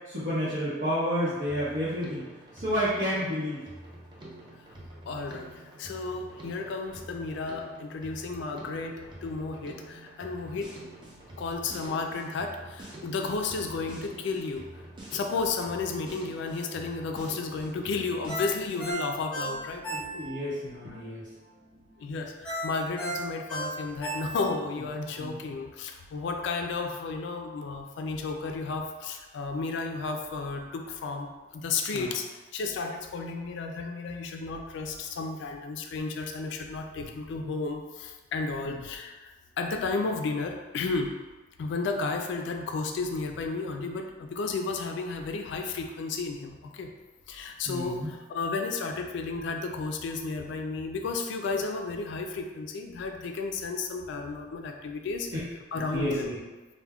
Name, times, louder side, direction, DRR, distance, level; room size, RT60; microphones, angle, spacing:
voice 1, 0.1-2.2 2.5-3.6 19.8-21.3 25.2-25.4 31.9-32.1 37.0-37.1 38.6-38.8 47.6-48.1 55.3-55.4 55.9-56.4, equal, 75° right, -12 dB, 0.8 m, -30 dB
Drum kit, 1.5-18.9, right 1 dB, 25° right, 0.5 m, -47 dB
voice 2, 5.1-5.5 5.8-8.9 9.2-10.7 11.4-14.6 15.1-19.8 22.0-31.3 31.5-32.2 32.5-39.1 39.6-41.1 41.6-46.9 47.3-55.3 55.7-56.3, left 4 dB, 65° left, 3 dB, 0.3 m, -33 dB
Ringtone, 18.3-20.5 20.9-21.0 22.4-24.7 25.1-25.2, right 1 dB, 5° left, 0.7 m, -34 dB
2.2 x 2.1 x 3.4 m, 1.2 s
head